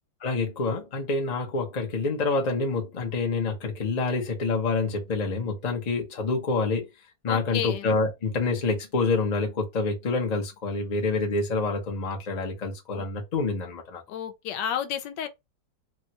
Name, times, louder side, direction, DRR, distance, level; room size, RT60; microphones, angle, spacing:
voice 1, 0.2-6.9 7.2-14.0, left 3 dB, 45° left, 0.5 m, -27 dB
voice 2, 7.3-7.9 12.9-13.1 14.1-15.3, left 9 dB, 75° left, 1.2 m, -31 dB
3.4 x 2.2 x 2.8 m
omnidirectional pair, 2.0 m